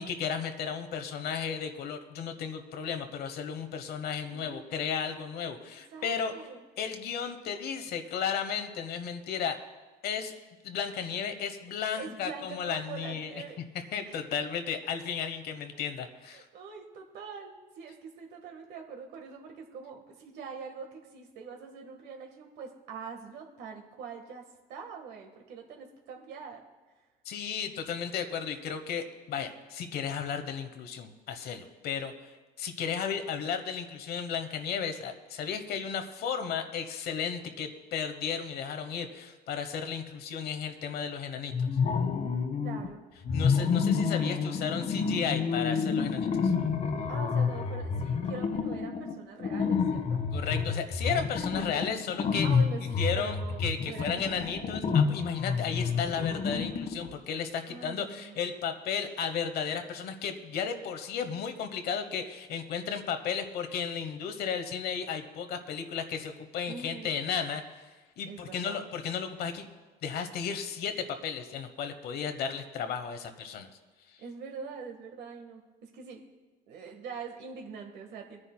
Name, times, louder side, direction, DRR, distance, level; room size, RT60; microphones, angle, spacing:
voice 1, 0.0-6.3 6.8-9.6 10.0-10.3 10.6-13.3 13.9-16.4 27.2-32.3 32.6-41.7 43.3-46.5 50.3-52.5 53.0-67.9 68.2-69.7 70.0-73.7, left 7 dB, 70° left, 7 dB, 1.0 m, -34 dB
voice 2, 4.3-4.7 5.6-6.6 11.9-13.6 14.0-14.2 16.2-26.6 42.6-43.0 47.1-50.2 51.4-51.8 52.4-54.4 57.7-58.3 66.7-67.2 68.3-68.9 74.2-76.2 76.7-78.4, right 5 dB, 80° right, 2 dB, 1.5 m, -44 dB
sound 1, 41.5-42.9 43.2-57.1, left 5 dB, 45° left, 1.1 m, -29 dB
24.0 x 9.9 x 2.2 m, 1.2 s
cardioid pair, 110°, 17 cm